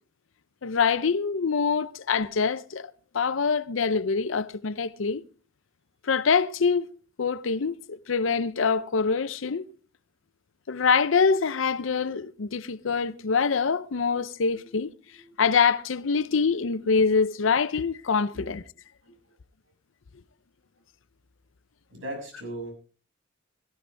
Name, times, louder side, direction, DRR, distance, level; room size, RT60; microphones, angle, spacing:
voice 1, 0.6-5.2 6.0-6.9 7.2-9.7 10.7-14.9 15.4-18.6, left 5 dB, 70° left, 0.6 m, -25 dB
voice 2, 21.9-22.7, right 1 dB, 75° right, 6.8 m, -37 dB
18.0 x 13.5 x 3.4 m
head